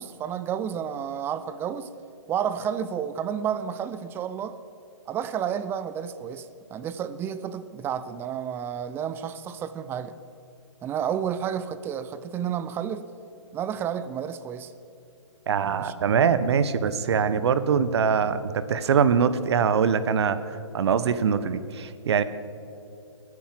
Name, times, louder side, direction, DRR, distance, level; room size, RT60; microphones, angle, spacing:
voice 1, 0.0-1.9 2.3-4.6 5.1-10.1 10.8-13.1 13.5-14.7 15.8-15.9, right 8 dB, 15° right, 12 dB, 0.5 m, -31 dB
voice 2, 15.5-20.4 20.7-22.2, right 6 dB, 60° right, 13 dB, 1.0 m, -23 dB
19.5 x 9.7 x 7.4 m, 2.6 s
hypercardioid pair, 140°, 16 cm